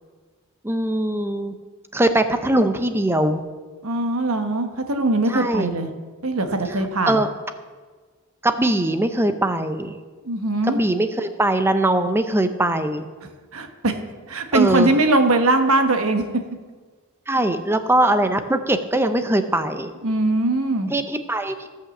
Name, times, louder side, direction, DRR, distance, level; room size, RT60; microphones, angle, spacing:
voice 1, 0.6-1.5 1.9-3.4 5.3-5.7 7.1-7.3 8.4-10.0 10.7-13.1 14.5-14.9 17.3-19.9 20.9-21.7, right 1 dB, 10° right, 8 dB, 0.7 m, -21 dB
voice 2, 3.8-5.9 6.2-7.2 10.2-10.8 13.5-14.0 14.3-16.2 20.0-20.9, right 2 dB, 75° right, 6 dB, 1.3 m, -21 dB
16.0 x 5.8 x 7.2 m, 1.4 s
head